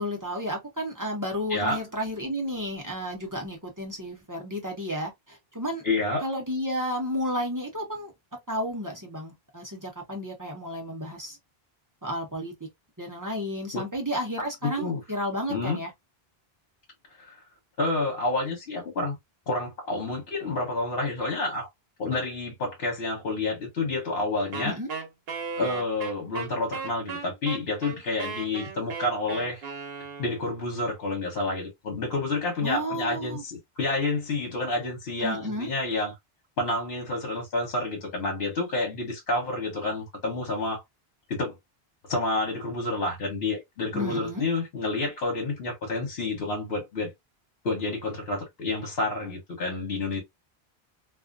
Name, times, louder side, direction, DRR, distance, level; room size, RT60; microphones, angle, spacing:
voice 1, 0.0-5.8 6.2-8.1 8.5-11.4 12.0-12.5 13.0-15.9 24.6-24.9 32.6-33.4 35.2-35.7 43.9-44.4, equal, 20° right, 0.7 m, -32 dB
voice 2, 5.8-6.3 13.7-13.8 14.6-15.0 15.5-15.8 17.2-17.4 17.8-19.2 19.5-21.7 22.0-24.8 25.6-29.7 30.2-36.1 36.6-40.8 41.3-41.5 42.1-47.1 47.6-50.2, left 2 dB, 70° left, 1.1 m, -29 dB
Wind instrument woodwind instrument, 24.5-30.6, right 5 dB, 75° right, 1.0 m, -36 dB
2.4 x 2.4 x 2.4 m
omnidirectional pair, 1.1 m